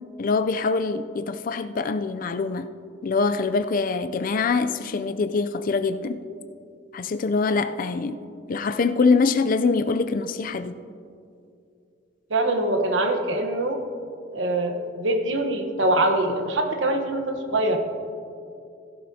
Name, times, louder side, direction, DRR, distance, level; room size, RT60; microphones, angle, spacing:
voice 1, 0.2-2.7 3.0-6.2 6.9-8.2 8.5-10.7, left 4 dB, 45° left, 0.4 m, -24 dB
voice 2, 12.3-13.8 14.3-17.8, right 1 dB, 80° right, 1.1 m, -23 dB
16.0 x 12.0 x 2.8 m
head